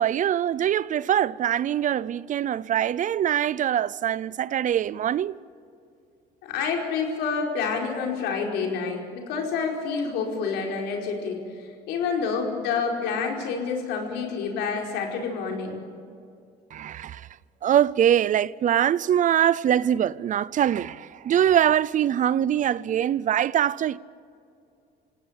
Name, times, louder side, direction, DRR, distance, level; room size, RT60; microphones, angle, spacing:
voice 1, 0.0-5.4 16.7-17.3 17.6-24.0, right 10 dB, 50° right, 0.6 m, -23 dB
voice 2, 6.4-15.8, left 5 dB, 90° left, 5.0 m, -28 dB
27.5 x 17.5 x 9.0 m
cardioid pair, 110°, 17 cm